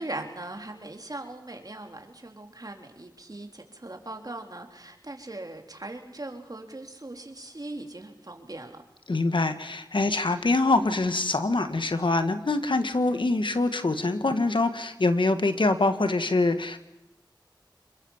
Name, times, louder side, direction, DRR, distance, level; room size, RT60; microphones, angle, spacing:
voice 1, 0.0-8.8, right 2 dB, 50° right, 3 dB, 3.5 m, -40 dB
voice 2, 9.1-16.8, left 2 dB, 75° left, 9 dB, 1.6 m, -24 dB
27.0 x 22.5 x 7.3 m, 0.89 s
wide cardioid pair, 45°, 8 cm